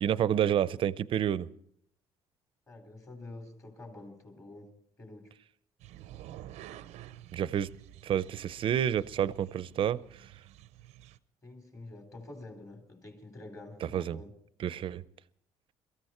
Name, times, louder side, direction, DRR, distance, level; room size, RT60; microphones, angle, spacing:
voice 1, 0.0-1.5 7.3-7.7 8.0-10.3 13.8-14.2 14.6-15.0, right 10 dB, 50° right, 0.6 m, -29 dB
voice 2, 2.7-5.3 11.4-14.3, left 2 dB, 30° left, 3.9 m, -48 dB
sound 1, 5.8-11.2, right 13 dB, 85° right, 0.7 m, -50 dB
23.0 x 14.5 x 4.4 m
cardioid pair, 120°, 11 cm